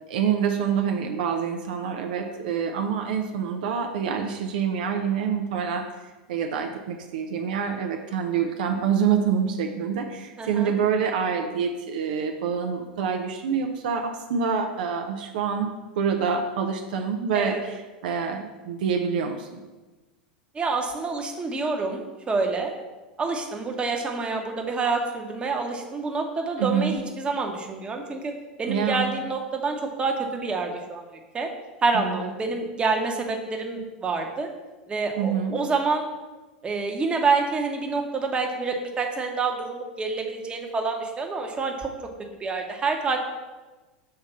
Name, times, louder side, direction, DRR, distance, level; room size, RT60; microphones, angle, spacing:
voice 1, 0.1-5.9 6.3-15.7 16.0-19.6 26.6-27.0 28.7-29.1 31.9-32.3 35.2-35.6, right 7 dB, 70° right, 4 dB, 0.6 m, -26 dB
voice 2, 10.4-10.7 17.3-17.6 20.5-22.7 23.2-28.3 28.6-31.5 31.8-34.5 34.9-36.1 36.6-41.9 42.4-43.2, right 4 dB, 20° right, 2 dB, 1.0 m, -27 dB
5.6 x 3.4 x 5.5 m, 1.2 s
hypercardioid pair, 90°, 5 cm